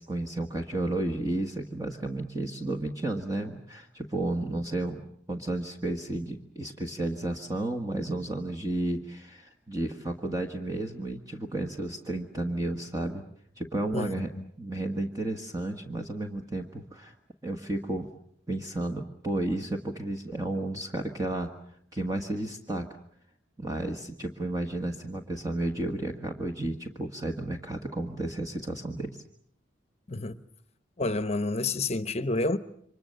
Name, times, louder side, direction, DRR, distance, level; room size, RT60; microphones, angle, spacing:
voice 1, 0.0-5.0 5.3-13.2 13.6-14.3 14.6-17.1 17.4-18.1 18.5-21.5 21.9-22.9 23.6-29.2, right 1 dB, 20° right, 1.6 m, -32 dB
voice 2, 13.9-14.5 30.1-30.4 31.0-32.6, left 2 dB, 35° left, 1.0 m, -29 dB
28.5 x 24.5 x 6.8 m
head